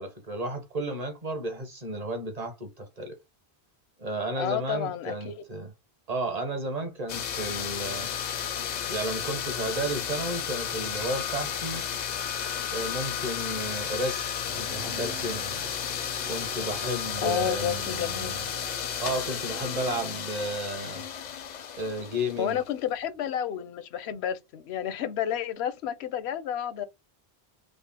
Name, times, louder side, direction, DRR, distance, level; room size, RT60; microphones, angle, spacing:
voice 1, 0.0-3.2 4.0-5.7 6.1-8.1 8.9-11.8 12.7-14.3 14.6-15.4 16.2-17.8 19.0-21.0 21.8-22.6, right 1 dB, 40° right, 0.9 m, -33 dB
voice 2, 4.4-5.4 17.2-18.4 22.4-26.9, left 9 dB, 85° left, 0.9 m, -31 dB
sound 1, 7.1-22.8, left 8 dB, 55° left, 0.5 m, -33 dB
sound 2, 14.5-20.2, right 5 dB, 75° right, 0.9 m, -45 dB
3.7 x 2.1 x 3.5 m
omnidirectional pair, 1.1 m